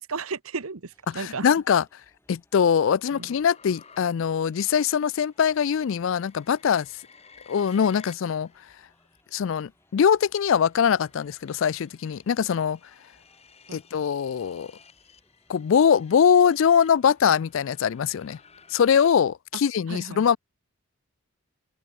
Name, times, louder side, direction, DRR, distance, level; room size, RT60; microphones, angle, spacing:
voice 1, 0.0-1.5 3.1-3.3 13.7-13.8 19.9-20.2, right 4 dB, 75° right, 1.1 m, -34 dB
sound 1, 0.9-18.9, left 1 dB, 10° left, 6.5 m, -66 dB
voice 2, 1.1-1.8 2.3-6.9 7.5-8.5 9.3-12.8 13.7-14.7 15.5-18.4 18.7-20.4, left 7 dB, 60° left, 0.3 m, -22 dB
sound 2, 3.0-9.2 9.8-19.1, left 5 dB, 30° left, 7.1 m, -55 dB
open air
head